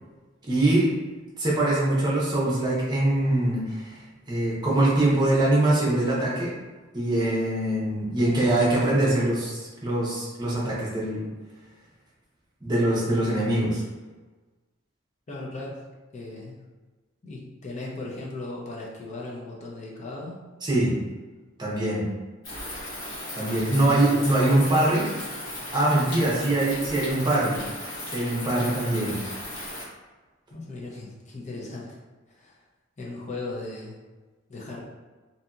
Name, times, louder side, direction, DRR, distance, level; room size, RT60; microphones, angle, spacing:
voice 1, 0.5-0.9 1.4-6.5 6.9-11.2 12.6-13.8 20.6-20.9 21.6-22.1 23.3-25.1 25.7-27.6 28.1-29.2, right 1 dB, 20° right, -6 dB, 0.7 m, -23 dB
voice 2, 15.3-15.8 16.1-16.5 17.2-20.4 23.5-24.6 30.5-31.9 32.3-32.6 33.0-34.0 34.5-34.8, left 2 dB, 35° left, -4 dB, 0.5 m, -37 dB
sound 1, 22.4-29.8, left 1 dB, 80° left, 1.2 m, -36 dB
2.7 x 2.7 x 2.3 m, 1.3 s
head